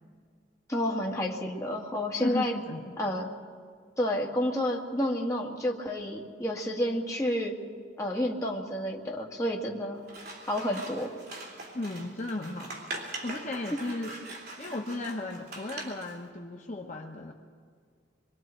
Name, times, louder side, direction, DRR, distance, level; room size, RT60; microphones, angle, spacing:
voice 1, 0.7-2.6 3.0-3.3 4.0-7.6 8.0-10.0 10.5-11.2 13.7-13.8, left 1 dB, 15° left, -1 dB, 1.9 m, -30 dB
voice 2, 2.2-2.9 11.7-14.2 14.6-17.3, left 2 dB, 40° left, 1 dB, 1.0 m, -35 dB
Scissors, 10.0-16.1, right 2 dB, 55° right, 3.3 m, -42 dB
25.5 x 23.5 x 4.5 m, 2.1 s
head